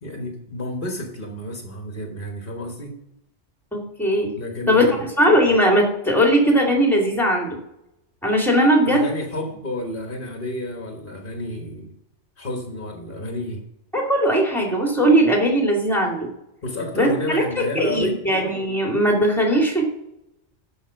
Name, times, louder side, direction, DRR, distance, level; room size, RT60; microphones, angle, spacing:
voice 1, 0.0-3.0 4.3-5.0 8.9-11.9 12.4-13.6 16.6-18.2, left 1 dB, 45° left, 2 dB, 1.6 m, -30 dB
voice 2, 3.7-4.3 4.7-7.6 8.2-9.1 13.9-16.2 16.9-19.9, equal, ahead, 0 dB, 2.5 m, -19 dB
13.0 x 5.6 x 5.7 m, 0.85 s
omnidirectional pair, 1.3 m